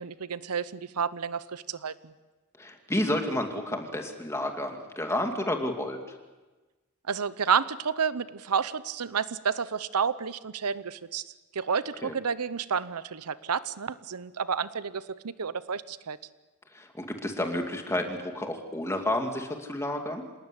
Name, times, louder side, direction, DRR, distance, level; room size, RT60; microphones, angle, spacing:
voice 1, 0.0-2.1 7.1-11.2 11.5-16.2, right 6 dB, 90° right, 16 dB, 0.8 m, -30 dB
voice 2, 2.6-6.0 12.0-12.1 16.7-20.2, left 1 dB, 10° left, 4 dB, 2.4 m, -30 dB
26.5 x 18.5 x 9.9 m, 1.2 s
head